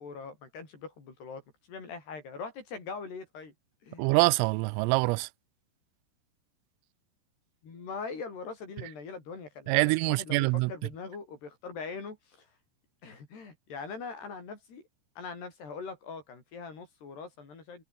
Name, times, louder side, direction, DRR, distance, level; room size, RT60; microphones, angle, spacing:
voice 1, 0.0-1.4 1.7-3.5 3.8-4.2 7.6-12.5 13.0-14.8 15.2-17.8, left 5 dB, 55° left, 8.5 m, -42 dB
voice 2, 4.0-5.3 9.7-10.7, right 25 dB, 90° right, 3.2 m, -25 dB
omnidirectional pair, 5.8 m